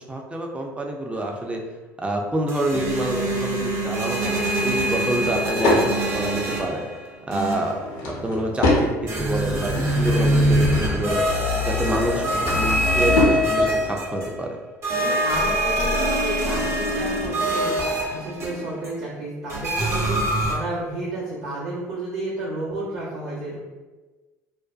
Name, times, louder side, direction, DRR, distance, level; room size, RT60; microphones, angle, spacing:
voice 1, 0.0-1.6 2.0-6.8 7.3-7.8 8.2-11.3 11.7-14.5, right 1 dB, 15° right, 1 dB, 0.4 m, -27 dB
sound 1, 2.5-7.0 7.3-7.9 9.1-14.4 14.8-18.9 19.5-20.5, equal, 35° right, 0.8 m, -24 dB
Drawer open or close / Wood, 4.9-5.9 7.6-8.9 9.4-10.6 11.9-13.4, left 2 dB, 65° left, 0.6 m, -25 dB
voice 2, 9.5-10.0 14.9-23.6, right 2 dB, 75° right, -11 dB, 0.8 m, -32 dB
2.5 x 2.1 x 2.4 m, 1.2 s
hypercardioid pair, 65°, 9 cm